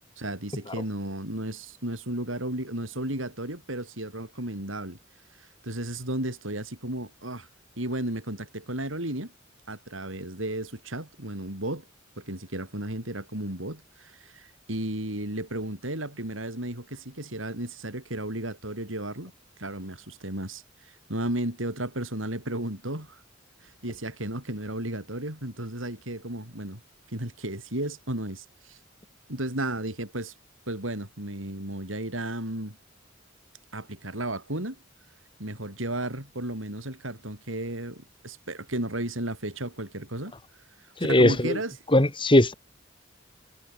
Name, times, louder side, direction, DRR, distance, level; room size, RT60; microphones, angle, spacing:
voice 1, 0.2-5.0 5.6-7.5 7.8-9.3 9.7-11.9 12.2-19.3 19.6-23.2 23.6-26.8 27.1-28.8 29.3-30.3 30.7-32.8 33.7-34.8 35.4-40.3 41.0-41.7, right 1 dB, 90° right, 7.6 m, -34 dB
voice 2, 41.0-41.6 41.9-42.5, left 1 dB, 25° left, 2.3 m, -19 dB
head